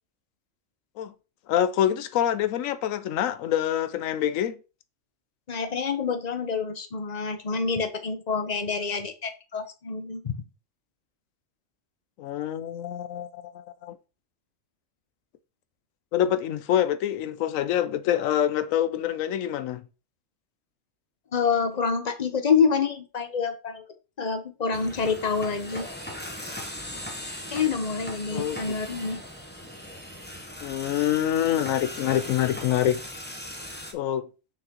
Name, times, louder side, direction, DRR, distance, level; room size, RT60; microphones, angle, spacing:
voice 1, 1.5-4.6 12.2-14.0 16.1-19.8 28.3-28.6 30.6-33.0 33.9-34.3, left 11 dB, 85° left, 1.0 m, -26 dB
voice 2, 5.5-10.4 21.3-23.8 24.2-25.9 27.5-29.2, left 5 dB, 35° left, 0.8 m, -27 dB
sound 1, 24.7-33.9, equal, 10° left, 0.8 m, -39 dB
6.2 x 6.0 x 2.9 m
omnidirectional pair, 1.3 m